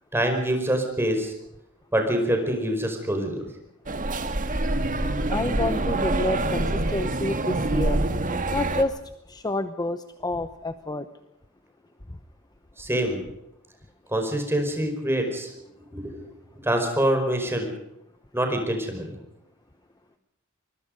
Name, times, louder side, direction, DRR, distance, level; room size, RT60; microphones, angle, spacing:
voice 1, 0.1-1.3 1.9-3.5 12.8-13.2 14.1-15.5 15.9-16.2 16.5-17.7 18.3-19.2, right 1 dB, 10° right, 4 dB, 5.0 m, -25 dB
sound 1, 3.9-8.8, right 2 dB, 40° right, 1.8 m, -26 dB
voice 2, 5.3-8.0 8.5-8.9 9.3-11.0, left 2 dB, 20° left, 10 dB, 0.9 m, -28 dB
24.5 x 22.5 x 5.3 m, 0.84 s
head